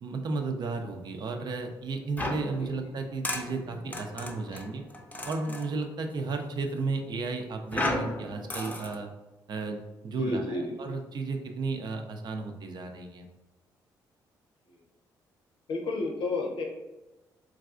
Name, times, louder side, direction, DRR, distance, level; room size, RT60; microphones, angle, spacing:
voice 1, 0.0-4.8 5.2-9.1 9.5-13.3, right 3 dB, 55° right, 4 dB, 0.5 m, -34 dB
sound 1, 2.2-5.7 7.7-9.0, left 1 dB, 20° left, 0.6 m, -35 dB
voice 2, 10.2-10.7 15.7-16.6, left 2 dB, 70° left, 1 dB, 0.8 m, -31 dB
4.0 x 2.4 x 2.4 m, 1.1 s
supercardioid pair, 70°, 9 cm